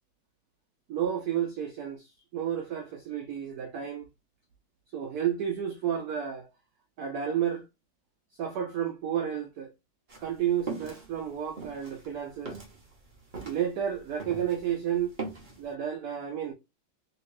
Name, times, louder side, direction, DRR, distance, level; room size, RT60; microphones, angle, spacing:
voice 1, 0.9-4.1 4.9-6.5 7.0-7.6 8.3-9.7 10.2-12.6 13.4-15.2 15.6-16.5, right 9 dB, 85° right, 0.8 m, -31 dB
sound 1, 10.1-14.7 15.0-15.6, right 4 dB, 50° right, 0.5 m, -40 dB
2.9 x 2.9 x 3.0 m
omnidirectional pair, 2.2 m